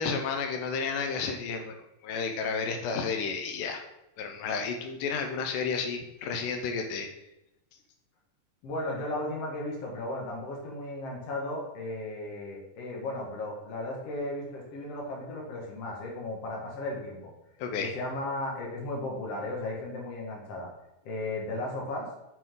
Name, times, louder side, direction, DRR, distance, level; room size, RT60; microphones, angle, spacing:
voice 1, 0.0-1.8 2.0-3.8 4.2-7.1 17.6-17.9, left 5 dB, 90° left, 4 dB, 2.4 m, -31 dB
voice 2, 8.6-17.3 17.8-20.7 21.0-22.1, left 1 dB, 55° left, -1 dB, 2.5 m, -35 dB
7.2 x 6.1 x 3.8 m, 0.88 s
omnidirectional pair, 3.7 m